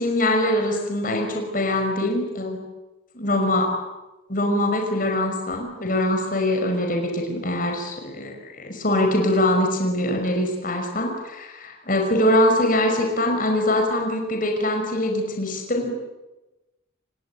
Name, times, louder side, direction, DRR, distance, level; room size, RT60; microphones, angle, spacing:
voice 1, 0.0-2.6 3.1-3.7 4.3-15.9, left 1 dB, 45° left, 3 dB, 5.5 m, -23 dB
29.5 x 20.5 x 9.3 m, 1.0 s
head